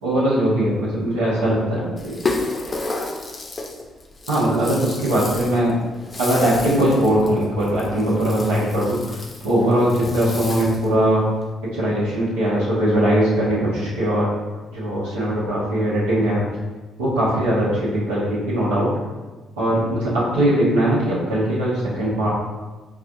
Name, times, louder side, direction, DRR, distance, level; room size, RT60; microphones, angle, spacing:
voice 1, 0.0-2.2 4.3-5.8 6.2-11.2 11.7-14.3 14.7-16.4 17.0-18.9 19.6-22.3, right 1 dB, 90° right, -9 dB, 1.0 m, -20 dB
Rattle (instrument), 2.0-10.9, left 3 dB, 35° left, 0.5 m, -32 dB
4.5 x 2.4 x 2.6 m, 1.2 s
hypercardioid pair, 50°, 0 cm